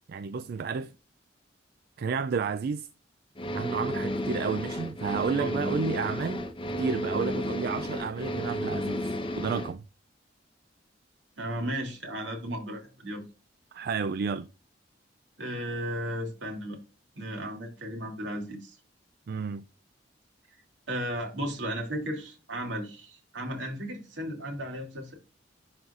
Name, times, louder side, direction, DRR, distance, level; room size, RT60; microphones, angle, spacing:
voice 1, 0.1-0.9 2.0-2.9 3.5-6.4 6.8-9.8 13.7-14.5 19.3-19.6, right 5 dB, 55° right, 0.4 m, -31 dB
sound 1, 3.4-9.7, equal, 30° left, 0.9 m, -32 dB
voice 2, 11.4-13.2 15.4-16.8 17.1-18.8 20.9-25.1, equal, 80° right, 2.6 m, -35 dB
11.5 x 4.0 x 2.5 m
head